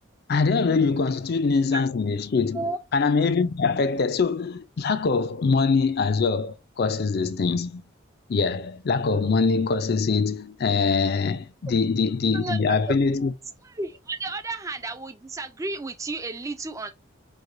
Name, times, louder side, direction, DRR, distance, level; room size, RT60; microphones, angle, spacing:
voice 1, 0.3-2.6 2.9-7.8 8.3-13.3, left 4 dB, 50° left, 0.4 m, -23 dB
voice 2, 12.3-12.9 13.6-16.9, right 3 dB, 15° right, 0.4 m, -32 dB
4.7 x 2.2 x 2.6 m
head